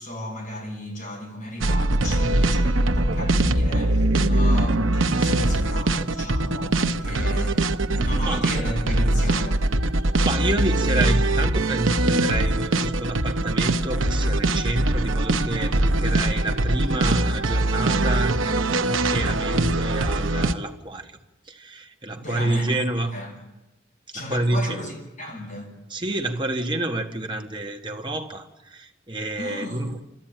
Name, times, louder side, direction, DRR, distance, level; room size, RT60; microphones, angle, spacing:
voice 1, 0.0-7.6 7.9-9.6 22.2-22.8 23.1-23.4 24.1-25.7 29.4-29.9, left 1 dB, 45° left, -1 dB, 6.7 m, -34 dB
sound 1, 1.6-20.5, right 2 dB, 90° right, 0.9 m, -22 dB
voice 2, 10.2-21.2 21.5-23.1 24.1-24.9 25.9-30.0, right 2 dB, 25° right, 4 dB, 1.5 m, -28 dB
28.0 x 13.5 x 9.1 m, 1.0 s
head